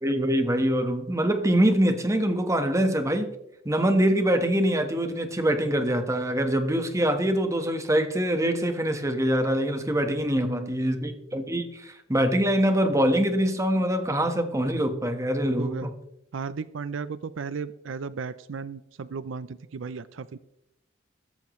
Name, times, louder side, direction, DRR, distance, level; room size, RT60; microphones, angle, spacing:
voice 1, 0.0-3.3 3.6-15.9, right 1 dB, 15° right, 7 dB, 1.3 m, -24 dB
voice 2, 10.4-10.9 15.6-15.9 16.3-20.4, right 5 dB, 75° right, 15 dB, 0.5 m, -35 dB
15.5 x 14.0 x 3.1 m, 0.84 s
head